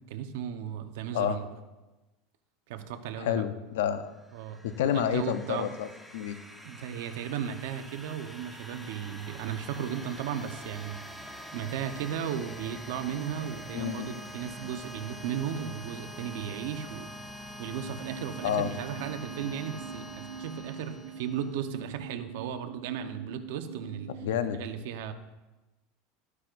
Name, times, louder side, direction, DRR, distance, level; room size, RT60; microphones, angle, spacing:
voice 1, 0.1-1.5 2.7-3.4 4.3-5.7 6.6-17.1 17.6-24.1 24.5-25.1, right 9 dB, 75° right, 7 dB, 0.9 m, -36 dB
voice 2, 3.2-4.1 4.6-6.4 13.7-14.1 18.4-18.7 24.2-24.6, left 10 dB, 90° left, 11 dB, 0.6 m, -29 dB
sound 1, 4.1-21.7, equal, ahead, 0.9 m, -45 dB
sound 2, 17.7-24.6, right 6 dB, 45° right, 1.5 m, -44 dB
14.0 x 9.7 x 2.6 m, 1.1 s
supercardioid pair, 140°, 0 cm